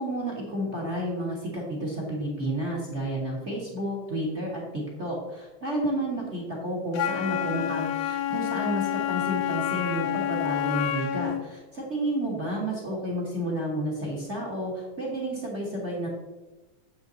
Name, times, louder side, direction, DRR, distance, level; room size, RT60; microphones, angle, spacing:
voice 1, 0.0-16.1, right 1 dB, 30° right, -2 dB, 1.5 m, -31 dB
Wind instrument woodwind instrument, 6.9-11.5, left 11 dB, 75° left, 2.0 m, -28 dB
9.0 x 7.1 x 4.0 m, 1.1 s
omnidirectional pair, 3.6 m